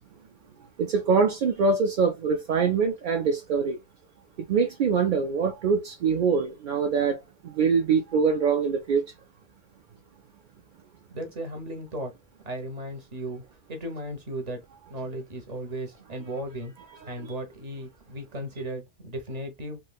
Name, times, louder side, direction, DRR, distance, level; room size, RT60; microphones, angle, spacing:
voice 1, 0.8-3.8 4.5-7.2 7.4-9.0 16.9-17.3, right 5 dB, 55° right, 0.6 m, -24 dB
voice 2, 11.1-12.1 12.4-13.4 13.7-14.6 14.9-16.7 17.1-19.8, right 1 dB, 35° right, 1.0 m, -35 dB
3.1 x 3.1 x 2.3 m
omnidirectional pair, 1.2 m